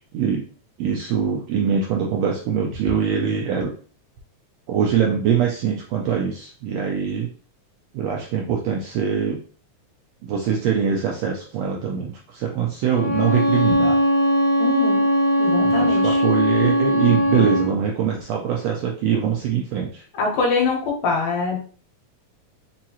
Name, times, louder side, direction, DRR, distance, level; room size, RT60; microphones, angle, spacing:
voice 1, 0.8-3.7 4.7-7.3 7.9-9.4 10.2-14.0 15.7-20.0, right 7 dB, 85° right, -1 dB, 1.5 m, -23 dB
Bowed string instrument, 12.9-17.7, equal, 40° left, 1.4 m, -19 dB
voice 2, 14.6-15.1 15.4-16.2 20.1-21.6, left 4 dB, 70° left, 0 dB, 2.1 m, -23 dB
4.9 x 2.7 x 2.8 m, 0.42 s
omnidirectional pair, 3.5 m